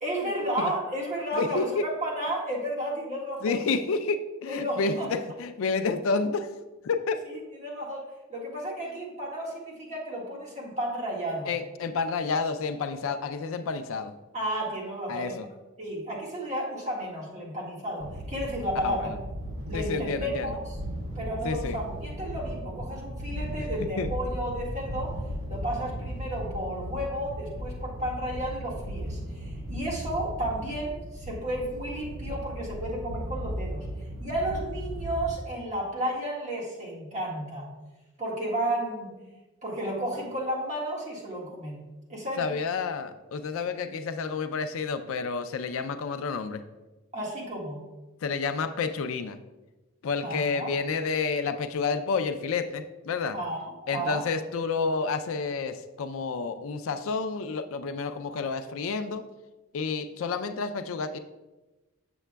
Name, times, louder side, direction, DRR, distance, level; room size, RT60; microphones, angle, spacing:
voice 1, 0.0-3.6 4.5-5.1 7.3-11.5 14.3-15.4 15.8-19.1 19.7-20.8 21.2-33.9 34.2-37.7 38.2-39.2 39.6-42.5 47.1-47.8 50.2-50.7 53.3-54.2, right 1 dB, 35° right, -4 dB, 1.6 m, -33 dB
voice 2, 1.3-1.8 3.4-6.5 6.8-7.2 11.5-14.1 15.1-15.5 18.8-19.1 19.7-20.6 21.4-21.8 23.8-24.1 42.4-46.6 48.2-49.4 50.0-53.4 53.9-59.2 59.7-61.2, left 4 dB, 75° left, 10 dB, 0.4 m, -30 dB
sound 1, 18.0-35.3, equal, 85° right, 1.3 m, -36 dB
7.2 x 7.0 x 2.2 m, 1.1 s
head